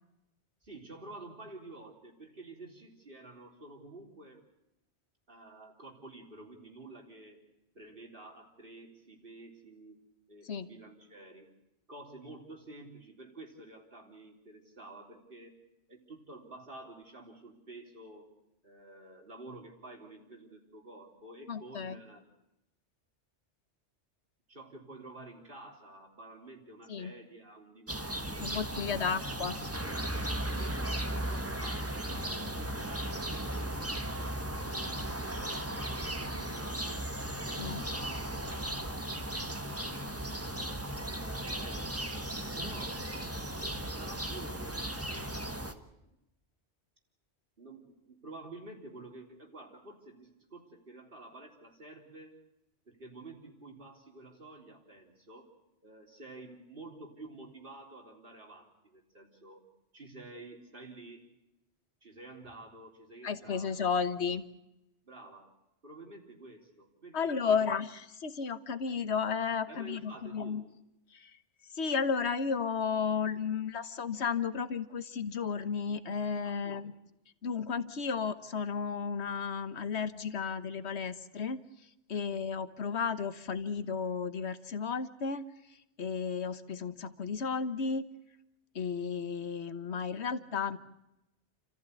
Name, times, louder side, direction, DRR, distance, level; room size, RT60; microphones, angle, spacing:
voice 1, 0.6-4.4 5.3-7.4 7.7-11.5 11.9-15.6 15.9-18.3 18.6-22.2 24.5-28.6 28.9-29.4 30.5-34.3 34.7-37.1 37.4-39.0 39.5-40.7 41.2-42.2 42.5-45.0 45.4-46.2 47.6-52.4 52.9-55.5 55.8-59.6 59.9-61.2 62.0-64.0 65.0-65.5 65.8-67.7 69.7-70.7 76.4-76.8 82.1-82.2, right 2 dB, 50° right, 2 dB, 4.0 m, -50 dB
voice 2, 21.5-22.0 26.9-27.1 28.4-29.6 37.6-37.8 63.2-64.5 67.1-67.9 68.2-70.6 71.1-71.3 71.7-76.9 77.4-81.6 82.1-85.4 86.0-88.1 88.7-90.8, left 6 dB, 70° left, 11 dB, 1.5 m, -33 dB
sound 1, 27.9-45.7, right 1 dB, 15° right, 1.4 m, -36 dB
30.0 x 14.5 x 8.2 m, 0.90 s
omnidirectional pair, 1.2 m